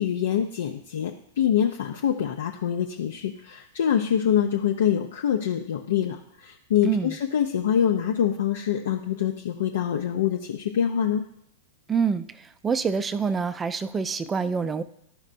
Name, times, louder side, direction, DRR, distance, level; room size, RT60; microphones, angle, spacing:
voice 1, 0.0-11.2, left 9 dB, 65° left, 3 dB, 0.5 m, -25 dB
voice 2, 6.8-7.1 11.9-12.3 12.6-14.8, right 6 dB, 20° right, 13 dB, 0.4 m, -26 dB
12.0 x 5.2 x 2.5 m, 0.75 s
hypercardioid pair, 105°, 0 cm